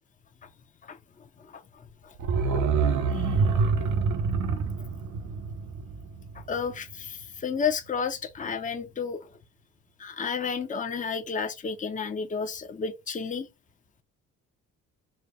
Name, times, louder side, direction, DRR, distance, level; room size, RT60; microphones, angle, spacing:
voice 1, 0.8-2.1 3.1-3.9 6.3-9.4 10.0-13.5, left 6 dB, 25° left, 0.7 m, -32 dB
sound 1, 2.2-6.9 7.2-7.3, right 5 dB, 75° right, 0.9 m, -26 dB
4.3 x 2.2 x 3.2 m
cardioid pair, 90°, 30 cm